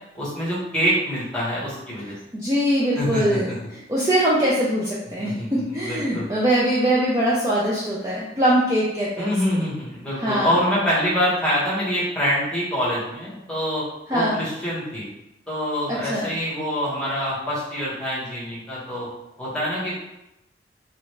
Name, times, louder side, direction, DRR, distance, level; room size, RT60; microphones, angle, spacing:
voice 1, 0.1-2.1 2.9-3.6 5.2-6.3 9.2-15.0 15.5-19.1 19.4-20.0, equal, 5° left, -8 dB, 1.1 m, -25 dB
voice 2, 2.3-3.6 3.9-9.3 10.2-10.5 14.1-14.4 15.9-16.3, right 1 dB, 20° right, -7 dB, 0.5 m, -22 dB
3.1 x 2.5 x 3.2 m, 0.89 s
head